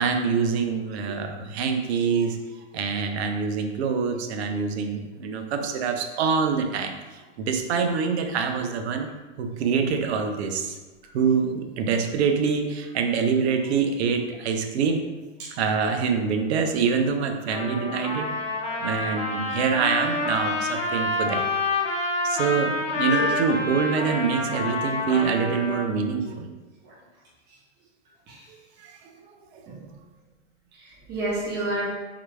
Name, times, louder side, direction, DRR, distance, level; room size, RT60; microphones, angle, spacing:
voice 1, 0.0-2.4 2.7-9.1 9.4-10.8 11.1-15.1 15.6-18.3 18.8-21.5 22.2-26.5 28.8-28.9 29.3-29.6, right 5 dB, 60° right, 5 dB, 0.7 m, -25 dB
Trumpet, 17.5-25.9, left 2 dB, 15° left, 0.6 m, -28 dB
voice 2, 30.7-31.9, right 1 dB, 25° right, -6 dB, 1.1 m, -30 dB
4.4 x 3.9 x 2.3 m, 1.2 s
hypercardioid pair, 115°, 37 cm